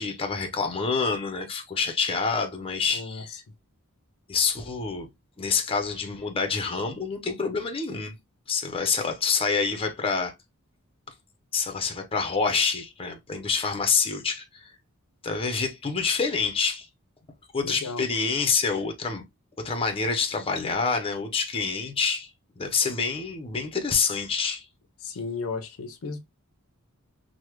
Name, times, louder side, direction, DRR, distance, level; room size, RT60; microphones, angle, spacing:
voice 1, 0.0-3.4 4.3-5.1 5.4-8.1 8.5-10.3 11.5-14.6 15.2-16.9 17.5-19.2 19.6-22.3 22.6-24.6, left 5 dB, 25° left, 0.5 m, -27 dB
voice 2, 2.9-3.2 17.6-18.0 25.0-26.2, left 4 dB, 70° left, 0.5 m, -34 dB
3.2 x 2.1 x 2.9 m
head